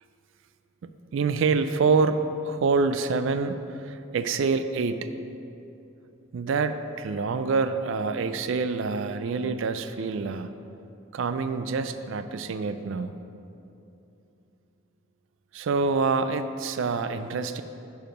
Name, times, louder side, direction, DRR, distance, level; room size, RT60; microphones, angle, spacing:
voice 1, 0.8-5.1 6.3-10.5 11.1-13.2 15.5-17.6, right 4 dB, 60° right, 10 dB, 0.3 m, -26 dB
10.5 x 4.7 x 5.1 m, 2.8 s
head